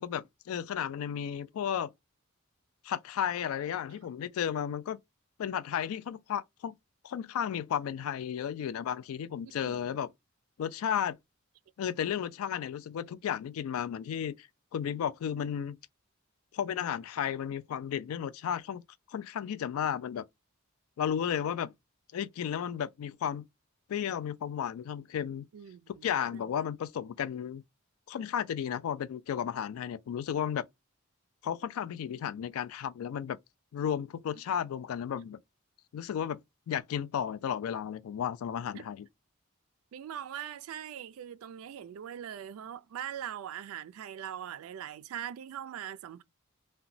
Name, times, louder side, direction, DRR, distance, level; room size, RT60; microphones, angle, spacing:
voice 1, 0.0-1.9 2.8-5.0 5.4-6.8 7.0-10.1 10.6-11.2 11.8-14.5 14.7-15.8 16.5-18.8 19.1-20.3 21.0-21.7 22.1-23.5 23.9-25.5 25.9-27.6 28.1-30.7 31.4-33.4 33.7-35.4 35.9-39.1, left 9 dB, 80° left, 0.3 m, -33 dB
voice 2, 9.4-9.9 25.5-26.7 38.7-38.9 39.9-46.2, right 10 dB, 80° right, 0.3 m, -42 dB
2.9 x 2.2 x 2.5 m
head